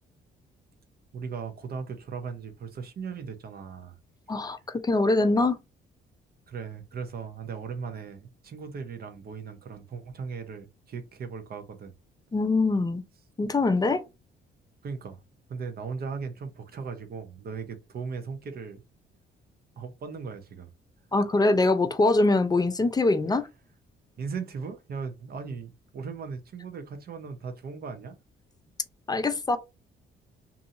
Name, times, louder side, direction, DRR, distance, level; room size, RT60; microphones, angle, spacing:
voice 1, 1.1-4.0 6.5-12.0 14.8-15.2 15.5-18.8 19.8-20.7 24.2-28.1, right 5 dB, 50° right, 0.8 m, -38 dB
voice 2, 4.8-5.6 12.3-13.0 13.4-14.0 21.1-23.5 29.1-29.6, left 2 dB, 20° left, 0.5 m, -23 dB
2.7 x 2.7 x 2.5 m
cardioid pair, 90°, 20 cm